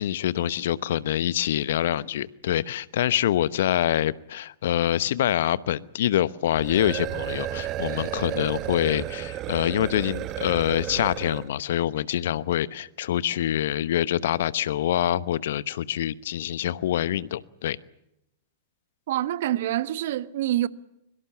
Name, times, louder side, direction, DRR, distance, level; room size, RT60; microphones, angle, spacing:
voice 1, 0.0-17.8, left 11 dB, 65° left, 0.9 m, -25 dB
sound 1, 6.5-11.5, right 13 dB, 35° right, 1.2 m, -33 dB
voice 2, 19.1-20.7, right 13 dB, 60° right, 1.2 m, -26 dB
24.5 x 23.5 x 7.2 m
hypercardioid pair, 105°, 0 cm